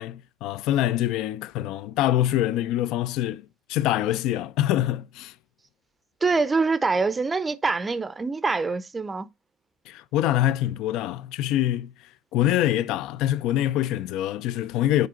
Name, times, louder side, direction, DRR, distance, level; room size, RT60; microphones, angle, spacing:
voice 1, 0.0-5.3 9.9-11.9 12.3-15.1, left 13 dB, 70° left, 0.4 m, -25 dB
voice 2, 6.2-9.3, right 4 dB, 15° right, 0.5 m, -24 dB
7.6 x 4.7 x 3.7 m
cardioid pair, 145°, 0 cm